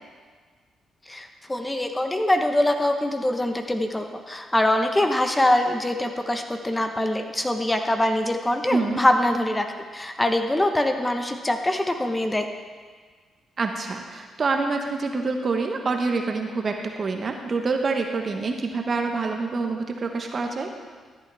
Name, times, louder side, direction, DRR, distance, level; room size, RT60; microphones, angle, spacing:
voice 1, 1.1-9.7 9.9-12.5, left 1 dB, 15° left, 5 dB, 1.1 m, -23 dB
voice 2, 8.7-9.0 13.6-20.7, right 4 dB, 50° right, 4 dB, 1.2 m, -26 dB
13.5 x 8.4 x 3.5 m, 1.5 s
supercardioid pair, 50°, 0 cm